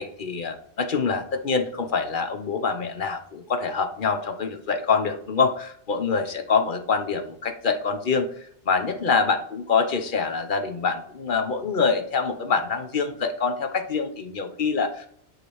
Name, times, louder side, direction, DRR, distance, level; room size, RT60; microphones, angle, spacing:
voice 1, 0.0-8.3 8.7-15.1, left 5 dB, 50° left, 6 dB, 0.9 m, -25 dB
8.8 x 4.9 x 3.1 m, 0.64 s
omnidirectional pair, 1.2 m